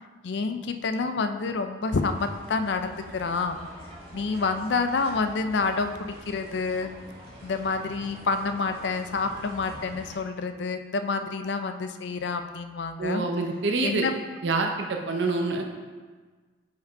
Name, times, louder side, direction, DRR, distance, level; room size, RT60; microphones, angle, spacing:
voice 1, 0.2-3.6 4.1-6.9 7.4-13.3 13.8-14.2, left 4 dB, 65° left, 8 dB, 0.4 m, -28 dB
sound 1, 1.9-10.2, equal, 30° right, 1.3 m, -46 dB
voice 2, 13.0-14.1 14.4-15.7, right 3 dB, 70° right, 3 dB, 0.7 m, -26 dB
5.1 x 5.0 x 4.5 m, 1.4 s
head